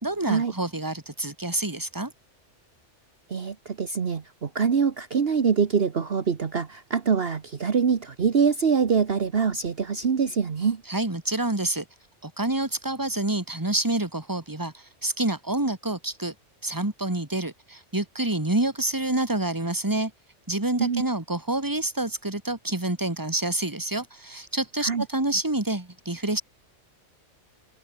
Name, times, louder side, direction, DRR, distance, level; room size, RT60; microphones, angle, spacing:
voice 1, 0.0-2.1 10.9-11.8 12.2-16.3 16.6-20.1 20.5-26.4, right 2 dB, 15° right, 2.4 m, -28 dB
voice 2, 3.3-10.8 20.8-21.0 24.8-25.0, right 6 dB, 50° right, 1.4 m, -24 dB
omnidirectional pair, 1.3 m